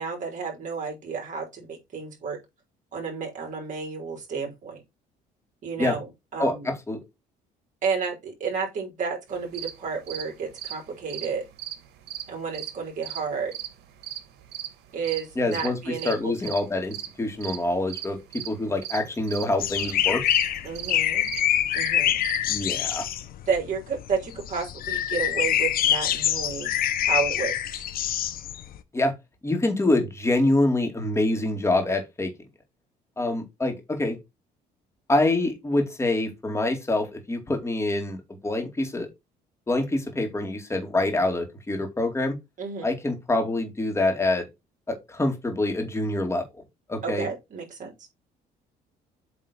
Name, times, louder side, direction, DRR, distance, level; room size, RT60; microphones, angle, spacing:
voice 1, 0.0-2.4 2.9-4.8 5.6-6.1 6.3-6.6 7.8-11.4 12.3-13.5 14.9-16.3 20.6-21.3 21.7-22.2 23.4-26.7 27.0-27.8 42.6-42.9 47.0-47.9, right 5 dB, 50° right, 3.7 m, -31 dB
voice 2, 6.4-7.0 15.4-20.2 22.5-23.1 28.9-29.1 29.4-32.3 33.2-34.2 35.1-39.1 39.7-42.4 42.8-44.5 44.9-46.5 46.9-47.3, left 2 dB, 15° left, 2.4 m, -25 dB
sound 1, 9.3-22.4, right 12 dB, 75° right, 1.4 m, -38 dB
sound 2, 19.6-28.8, left 11 dB, 60° left, 0.8 m, -25 dB
8.3 x 3.7 x 4.3 m
cardioid pair, 110°, 17 cm